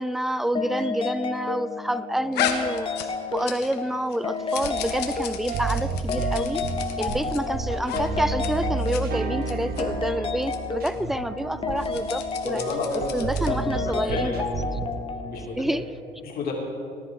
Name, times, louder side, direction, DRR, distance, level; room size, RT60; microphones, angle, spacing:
voice 1, 0.0-2.9 3.3-6.6 7.0-12.6 13.1-14.4 15.6-15.8, right 1 dB, ahead, 16 dB, 0.3 m, -28 dB
sound 1, 0.6-15.3, left 5 dB, 30° left, 0.8 m, -32 dB
sound 2, 2.3-3.8 4.1-7.4 7.8-8.0 8.3-8.5 8.8-9.0 9.4-9.8 10.4-10.6 10.8-10.9 11.7-13.6, left 9 dB, 80° left, 1.2 m, -34 dB
sound 3, 4.6-15.0, right 4 dB, 65° right, 1.1 m, -31 dB
voice 2, 12.4-13.2 13.8-14.4 15.2-15.6 16.2-16.5, left 4 dB, 60° left, -1 dB, 2.9 m, -31 dB
18.5 x 10.5 x 3.9 m, 2.5 s
cardioid pair, 110°, 17 cm